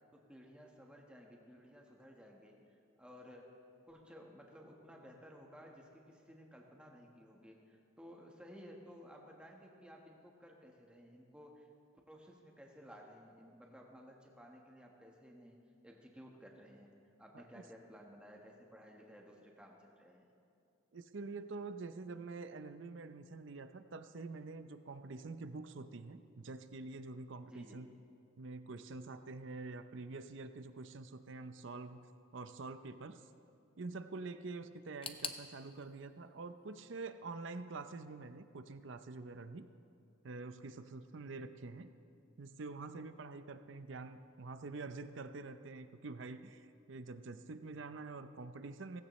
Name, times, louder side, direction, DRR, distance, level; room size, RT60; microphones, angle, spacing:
voice 1, 0.1-3.5 3.9-11.7 12.1-15.6 15.8-16.9 17.2-20.2 27.4-27.9, equal, 5° right, 0 dB, 1.3 m, -56 dB
voice 2, 20.9-27.9 28.4-32.0 32.3-33.2 33.8-39.7 40.2-41.9 42.4-49.0, right 3 dB, 60° right, 10 dB, 0.6 m, -46 dB
sound 1, 35.0-37.9 38.1-39.0 39.3-39.4 40.2-40.3, left 6 dB, 25° left, 0.5 m, -49 dB
16.5 x 16.0 x 3.2 m, 2.6 s
head